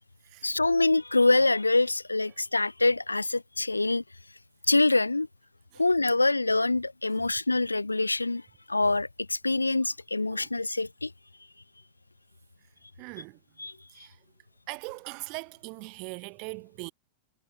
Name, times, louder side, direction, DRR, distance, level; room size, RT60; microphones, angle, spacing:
voice 1, 0.4-4.0 4.7-5.3 5.8-8.4 8.7-11.1 13.6-13.7, left 2 dB, 80° left, 0.6 m, -25 dB
voice 2, 13.0-13.4 13.9-14.2 14.7-16.9, right 34 dB, 45° right, 0.6 m, -40 dB
figure-of-eight pair, 90°, 0 cm